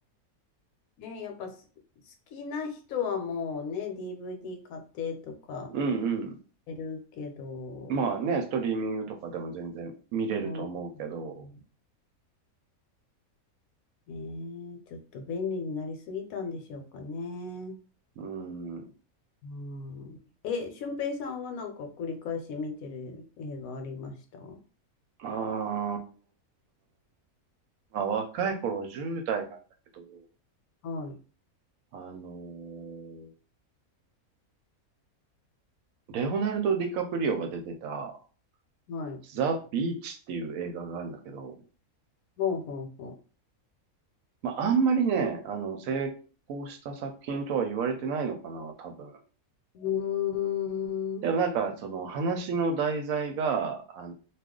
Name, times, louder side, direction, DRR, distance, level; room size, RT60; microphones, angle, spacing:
voice 1, 1.0-1.6 2.1-5.7 6.7-8.0 10.4-10.7 10.9-11.1 11.4-11.6 14.1-17.7 19.4-20.2 20.4-24.6 30.8-31.2 38.9-39.2 42.4-43.1 49.7-51.3, left 6 dB, 75° left, 4 dB, 1.0 m, -35 dB
voice 2, 5.7-6.4 7.9-11.3 18.2-18.8 25.2-26.0 27.9-29.6 29.9-30.2 31.9-33.3 36.1-38.1 39.3-41.5 44.4-46.1 46.5-49.1 51.2-54.1, right 5 dB, 75° right, 6 dB, 0.9 m, -30 dB
2.4 x 2.3 x 3.6 m, 0.38 s
omnidirectional pair, 1.6 m